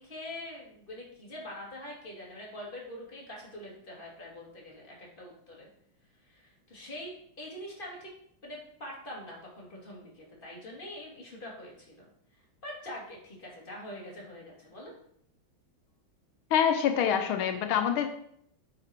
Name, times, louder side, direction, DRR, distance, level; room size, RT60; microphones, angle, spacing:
voice 1, 0.0-5.7 6.2-8.1 8.4-12.1 12.6-14.9, left 1 dB, 25° left, -3 dB, 2.5 m, -44 dB
voice 2, 16.5-18.1, left 8 dB, 85° left, 7 dB, 1.5 m, -25 dB
9.0 x 5.0 x 4.4 m, 0.70 s
omnidirectional pair, 2.2 m